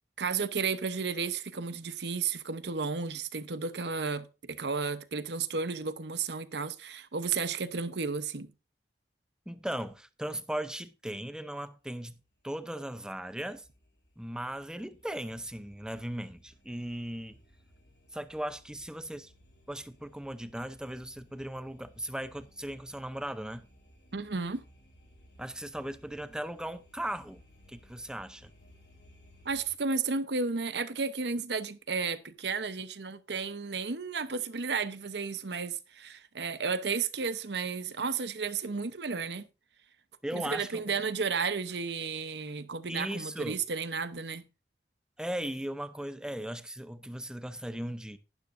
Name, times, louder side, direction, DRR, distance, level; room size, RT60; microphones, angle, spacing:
voice 1, 0.2-8.5 24.1-24.6 29.4-39.5 40.3-44.4, right 5 dB, 75° right, 0.9 m, -33 dB
voice 2, 9.5-12.2 12.4-13.7 14.2-17.4 18.1-19.3 19.7-23.7 25.4-27.4 27.7-28.5 40.2-41.0 42.9-43.6 45.2-48.2, right 1 dB, 5° right, 0.6 m, -37 dB
sound 1, 11.8-29.7, equal, 75° left, 4.2 m, -60 dB
12.0 x 11.0 x 2.6 m
head